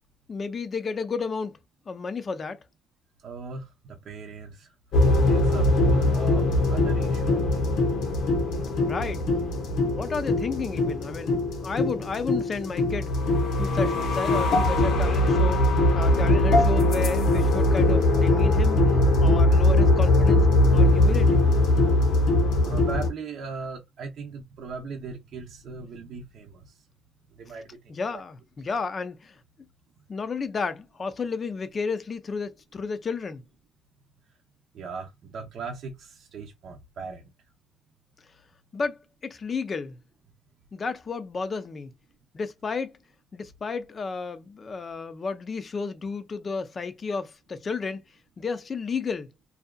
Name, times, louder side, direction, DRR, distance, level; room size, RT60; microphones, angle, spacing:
voice 1, 0.3-1.6 1.9-2.6 8.8-9.2 9.9-13.1 13.6-15.6 15.9-18.8 19.2-20.5 20.7-21.4 27.9-29.4 30.1-33.4 38.7-40.0 40.7-41.9 42.3-42.9 43.3-48.0 48.4-49.3, left 4 dB, 40° left, 0.5 m, -32 dB
voice 2, 3.2-4.7 5.2-7.8 22.6-26.7 27.4-27.8 28.1-28.2 34.7-37.2, right 4 dB, 70° right, 0.6 m, -38 dB
sound 1, 4.9-23.1, left 2 dB, 80° left, 0.8 m, -21 dB
2.7 x 2.3 x 2.2 m
cardioid pair, 90°, 0 cm